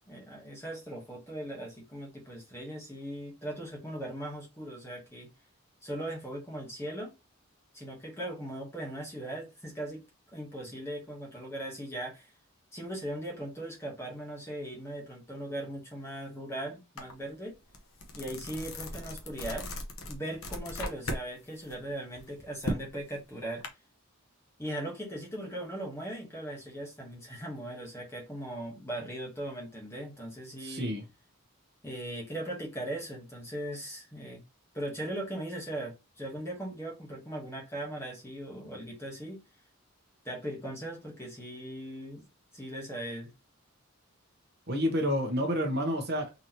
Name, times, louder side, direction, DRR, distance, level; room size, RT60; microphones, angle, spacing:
voice 1, 0.1-5.3 5.8-7.1 7.7-10.0 10.3-12.3 12.7-17.6 18.1-19.7 20.1-23.6 24.6-30.9 31.8-34.4 34.7-39.4 40.2-42.3 42.5-43.3, right 1 dB, 10° left, 1.1 m, -39 dB
sound 1, 17.0-17.1 17.5-21.3 21.6-23.7, left 1 dB, 75° left, 0.9 m, -37 dB
voice 2, 30.6-31.0 44.7-46.3, equal, 50° right, 0.9 m, -29 dB
4.0 x 2.8 x 2.9 m
head